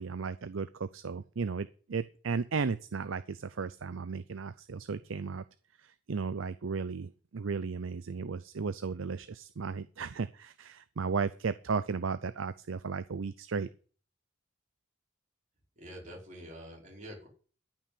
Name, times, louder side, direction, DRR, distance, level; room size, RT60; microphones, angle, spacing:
voice 1, 0.0-5.4 5.8-13.7, right 5 dB, 70° right, 14 dB, 0.6 m, -35 dB
voice 2, 15.8-17.3, equal, 40° right, -1 dB, 5.3 m, -46 dB
13.5 x 6.1 x 8.4 m, 0.40 s
head